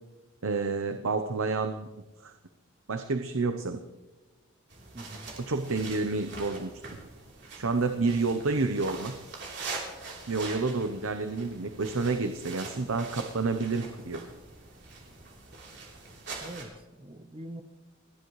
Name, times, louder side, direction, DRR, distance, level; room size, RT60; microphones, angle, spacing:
voice 1, 0.4-1.9 2.2-2.3 2.9-3.8 5.5-6.7 7.5-9.1 10.3-14.2, right 3 dB, 75° right, 7 dB, 0.8 m, -29 dB
sound 1, 4.7-16.6, right 3 dB, 60° right, 3.5 m, -43 dB
voice 2, 4.9-5.3 16.4-17.6, right 1 dB, 25° right, 8 dB, 0.9 m, -43 dB
30.0 x 10.5 x 3.2 m, 1.1 s
head